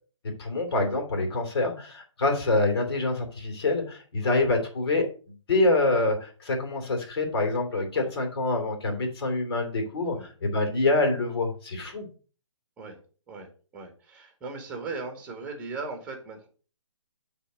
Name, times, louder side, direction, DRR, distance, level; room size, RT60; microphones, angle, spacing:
voice 1, 0.4-5.1 5.5-12.1, left 2 dB, 50° left, 4 dB, 2.9 m, -26 dB
voice 2, 13.3-16.5, right 4 dB, 10° right, 3 dB, 1.6 m, -38 dB
8.2 x 3.6 x 6.4 m, 0.39 s
hypercardioid pair, 150°, 16 cm